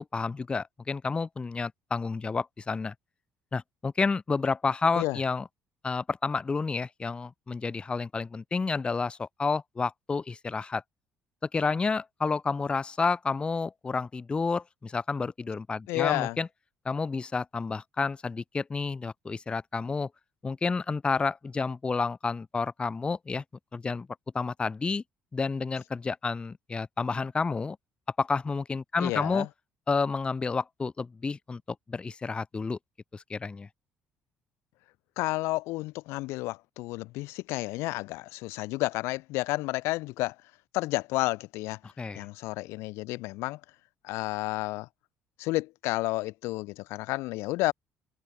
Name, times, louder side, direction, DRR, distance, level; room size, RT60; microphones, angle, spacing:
voice 1, 0.0-2.9 3.5-5.4 5.8-10.8 11.5-16.5 16.9-20.1 20.4-23.4 23.7-24.1 24.3-25.0 25.3-27.8 28.2-29.5 29.9-31.6 31.9-32.8 33.1-33.7 41.8-42.3, left 4 dB, 20° left, 0.4 m, -30 dB
voice 2, 15.9-16.4 29.0-29.5 35.2-40.4 40.7-41.8 42.2-43.6 44.0-44.9 45.4-47.7, left 20 dB, 85° left, 0.6 m, -31 dB
open air
supercardioid pair, 85°, 4 cm